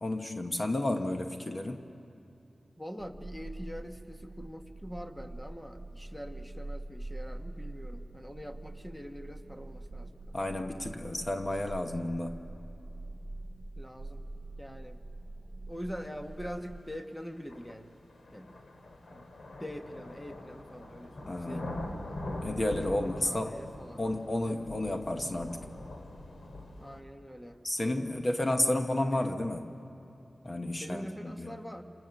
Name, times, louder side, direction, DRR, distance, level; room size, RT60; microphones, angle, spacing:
voice 1, 0.0-1.8 10.3-12.5 21.3-21.8 22.4-23.6 24.0-25.7 27.6-29.7 30.4-31.6, left 1 dB, 30° left, 5 dB, 1.0 m, -32 dB
voice 2, 2.8-10.4 13.7-14.3 14.6-15.0 15.7-17.9 18.3-18.6 19.1-19.3 19.6-22.2 22.9-24.9 26.8-27.6 30.8-31.8, equal, 5° left, 6 dB, 1.2 m, -44 dB
sound 1, 3.0-16.8, right 2 dB, 25° right, 0.6 m, -44 dB
sound 2, 16.4-16.5 17.5-27.0, left 1 dB, 75° left, 2.2 m, -43 dB
28.5 x 28.0 x 6.9 m, 2.7 s
wide cardioid pair, 120°, 0 cm